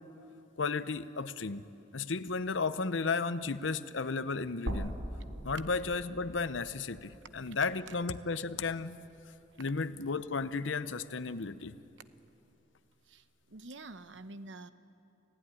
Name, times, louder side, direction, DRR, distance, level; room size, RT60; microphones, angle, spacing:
voice 1, 0.6-1.6 1.9-4.9 5.4-9.0 9.6-11.8, left 4 dB, 80° left, 13 dB, 0.8 m, -34 dB
sound 1, 4.7-8.8 9.2-9.3 10.7-10.8, right 1 dB, 90° right, 2.8 m, -42 dB
voice 2, 13.1-14.7, right 2 dB, 70° right, 11 dB, 1.0 m, -48 dB
29.0 x 16.0 x 10.0 m, 2.9 s
head